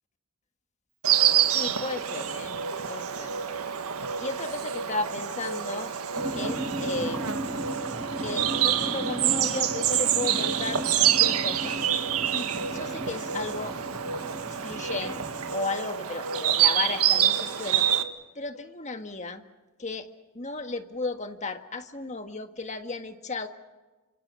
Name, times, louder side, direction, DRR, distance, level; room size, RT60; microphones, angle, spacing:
Insect, 1.0-18.0, right 10 dB, 85° right, 1.7 m, -27 dB
voice 1, 1.5-3.4 4.2-5.9 6.3-7.5 8.2-11.8 12.3-14.2 14.6-15.2 15.5-17.9 18.4-19.4 19.8-20.1 20.3-23.5, left 3 dB, 30° left, 7 dB, 1.7 m, -34 dB
sound 1, 6.2-15.5, equal, 25° right, 2.6 m, -36 dB
29.0 x 26.0 x 5.7 m, 1.2 s
head